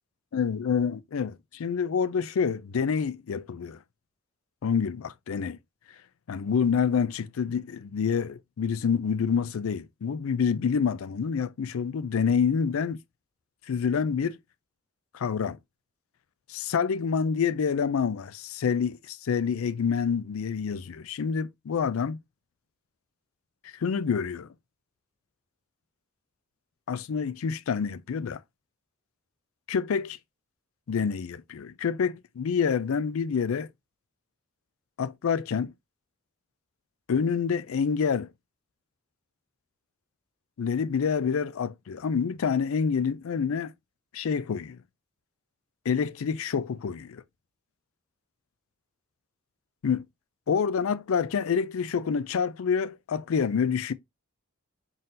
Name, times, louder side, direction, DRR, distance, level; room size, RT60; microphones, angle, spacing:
voice 1, 0.3-3.8 4.6-5.6 6.3-13.0 13.7-14.4 15.1-15.6 16.5-22.2 23.8-24.5 26.9-28.4 29.7-30.2 30.9-33.7 35.0-35.7 37.1-38.3 40.6-43.7 44.1-44.8 45.9-47.2 49.8-50.0 50.5-53.9, left 6 dB, 75° left, 0.4 m, -27 dB
4.0 x 3.9 x 2.5 m
head